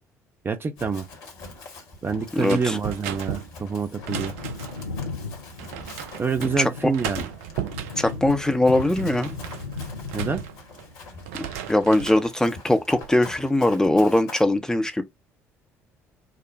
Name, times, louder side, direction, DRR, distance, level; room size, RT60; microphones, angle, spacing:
voice 1, 0.4-1.1 2.0-4.3 6.2-7.3 10.1-10.4, right 5 dB, 30° right, 0.7 m, -27 dB
Run, 0.8-14.4, left 3 dB, 65° left, 1.4 m, -43 dB
voice 2, 2.3-2.8 6.6-6.7 8.0-9.3 11.4-15.0, left 1 dB, 10° left, 0.7 m, -21 dB
sound 1, 2.4-4.9 5.6-6.5 6.9-8.2 8.7-10.9 11.2-12.3 12.7-13.1, right 10 dB, 70° right, 0.4 m, -36 dB
Wind / Thunder, 3.8-12.1 12.4-12.5, left 4 dB, 90° left, 0.4 m, -37 dB
5.1 x 2.1 x 2.6 m
figure-of-eight pair, 50°, 8 cm